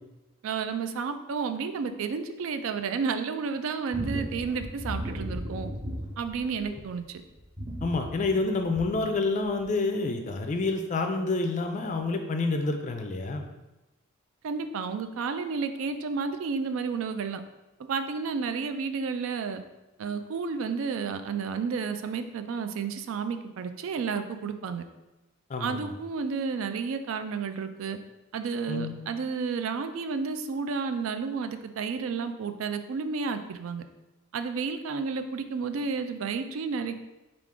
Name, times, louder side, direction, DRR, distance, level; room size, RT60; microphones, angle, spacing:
voice 1, 0.4-5.7 6.2-7.2 14.4-17.4 17.9-19.6 20.0-24.8 25.6-28.0 28.3-33.8 34.3-37.0, right 5 dB, 70° right, 9 dB, 0.3 m, -31 dB
sound 1, 3.9-6.9 7.4-9.1 9.6-9.7, equal, 20° right, 0.7 m, -36 dB
voice 2, 7.8-13.5 25.5-25.9 28.7-28.9, left 3 dB, 35° left, 5 dB, 0.4 m, -28 dB
4.7 x 2.4 x 3.6 m, 1.0 s
head